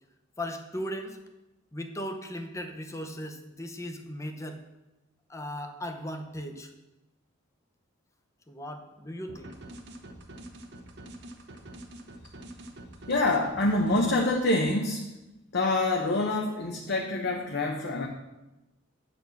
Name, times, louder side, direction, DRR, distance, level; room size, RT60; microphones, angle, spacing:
voice 1, 0.4-1.2 1.7-4.6 5.3-6.7 8.5-9.5, equal, 15° left, 5 dB, 0.7 m, -37 dB
sound 1, 9.3-14.4, right 1 dB, 55° right, 0.9 m, -46 dB
voice 2, 13.1-15.0 15.5-18.1, left 2 dB, 55° left, 0 dB, 0.8 m, -26 dB
9.1 x 4.3 x 7.0 m, 0.99 s
head